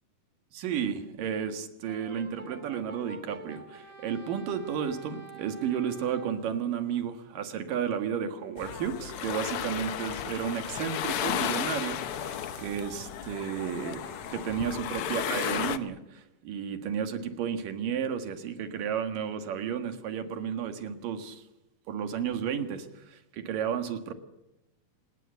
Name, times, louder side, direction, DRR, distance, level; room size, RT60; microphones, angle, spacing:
voice 1, 0.5-21.4 21.9-24.1, right 8 dB, 80° right, 8 dB, 3.4 m, -33 dB
Brass instrument, 1.9-6.4 8.8-15.1, right 2 dB, 10° right, 4.6 m, -48 dB
sound 1, 8.6-15.8, left 10 dB, 75° left, 1.3 m, -34 dB
26.5 x 19.0 x 8.1 m, 0.92 s
omnidirectional pair, 3.8 m